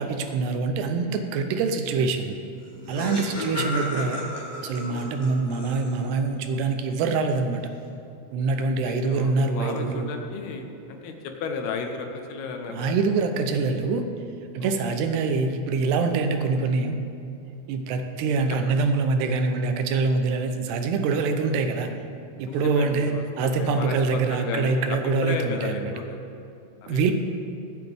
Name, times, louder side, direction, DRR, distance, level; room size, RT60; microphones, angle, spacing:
voice 1, 0.0-2.4 2.9-4.3 4.6-7.6 8.3-10.1 12.7-14.0 14.5-17.0 17.7-21.9 22.4-25.9 26.9-27.1, right 4 dB, 80° right, 6 dB, 2.8 m, -25 dB
Laughter, 2.3-2.4 2.6-6.2, left 1 dB, 15° left, 0.9 m, -34 dB
voice 2, 3.0-3.5 4.8-5.1 8.6-12.9 14.6-15.0 18.5-18.8 22.4-26.2 26.8-27.1, left 5 dB, 75° left, 4 dB, 2.8 m, -34 dB
23.5 x 8.1 x 3.5 m, 2.6 s
omnidirectional pair, 4.9 m